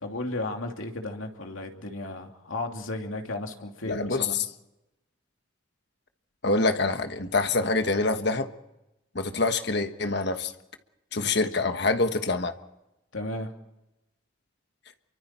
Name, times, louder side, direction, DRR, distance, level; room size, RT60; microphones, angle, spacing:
voice 1, 0.0-4.4 11.2-11.3 13.1-13.5, left 2 dB, 80° left, 3 dB, 2.8 m, -34 dB
voice 2, 3.9-4.5 6.4-8.5 9.1-10.5 11.1-12.5, left 3 dB, 55° left, 8 dB, 1.4 m, -25 dB
28.5 x 24.0 x 4.4 m, 0.93 s
head